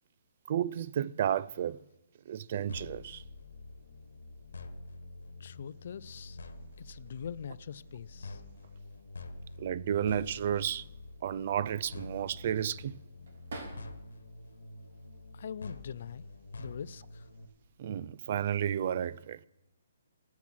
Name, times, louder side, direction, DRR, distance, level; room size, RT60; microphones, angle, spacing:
voice 1, 0.5-1.8 2.3-3.2 9.6-10.9 11.2-13.0 17.8-19.4, right 9 dB, 40° right, 0.3 m, -32 dB
sound 1, 2.7-17.5, left 2 dB, 90° left, 1.4 m, -47 dB
voice 2, 5.4-6.4 6.8-8.4 15.3-16.2 16.6-17.3, left 8 dB, 50° left, 0.4 m, -43 dB
sound 2, 11.8-14.2 14.7-15.5 16.5-16.8 17.1-17.9, right 2 dB, 55° right, 3.6 m, -50 dB
18.0 x 7.2 x 6.1 m
hypercardioid pair, 170°, 0 cm